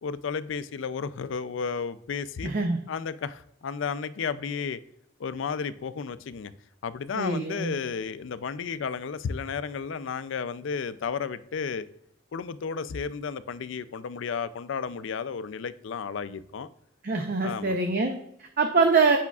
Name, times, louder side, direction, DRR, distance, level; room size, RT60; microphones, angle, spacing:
voice 1, 0.0-2.5 2.9-4.8 5.2-6.5 6.8-11.8 12.3-16.7 17.4-17.7, left 6 dB, 65° left, 0.4 m, -33 dB
voice 2, 2.4-2.8 7.1-7.7 17.0-19.2, right 4 dB, 45° right, 0.5 m, -24 dB
8.2 x 5.8 x 2.3 m
head